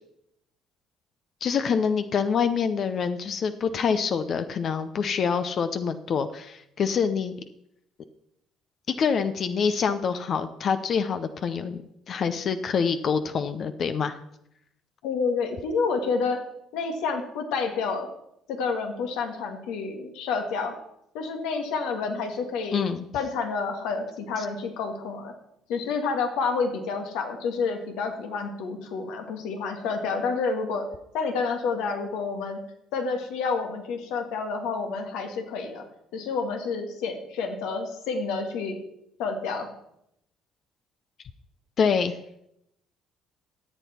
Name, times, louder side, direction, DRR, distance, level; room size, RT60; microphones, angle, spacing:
voice 1, 1.4-7.4 8.9-11.8 12.1-14.2 22.7-23.0 24.4-24.5 41.8-42.2, left 6 dB, 55° left, 10 dB, 0.7 m, -26 dB
voice 2, 15.0-16.4 16.7-18.1 18.5-20.8 21.1-22.8 23.1-25.3 25.7-30.9 31.1-32.6 32.9-35.9 36.1-38.8 39.2-39.7, left 4 dB, 75° left, 5 dB, 1.8 m, -29 dB
13.5 x 8.2 x 4.3 m, 0.79 s
hypercardioid pair, 60°, 0 cm